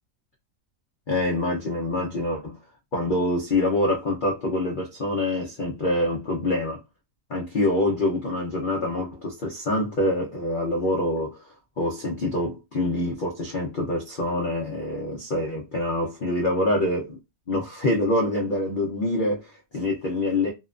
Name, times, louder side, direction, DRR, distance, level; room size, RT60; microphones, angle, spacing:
voice 1, 1.1-2.6 2.9-6.8 7.3-11.4 11.8-17.1 17.5-20.5, left 1 dB, 70° left, 0.4 m, -25 dB
2.9 x 2.1 x 2.4 m
omnidirectional pair, 1.8 m